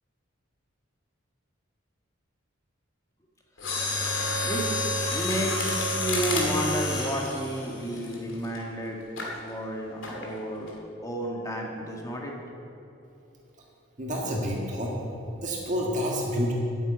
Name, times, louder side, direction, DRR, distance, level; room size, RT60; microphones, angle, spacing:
Mechanisms, 3.6-8.6 9.2-9.4 10.0-10.3 10.7-10.8, left 2 dB, 70° left, 2.5 m, -29 dB
voice 1, 4.3-9.0 9.4-10.7 11.0-12.3, right 1 dB, 15° left, -1 dB, 1.7 m, -32 dB
voice 2, 14.0-14.9 15.4-16.5, equal, 40° right, -2 dB, 1.6 m, -28 dB
9.0 x 8.4 x 9.2 m, 2.9 s
head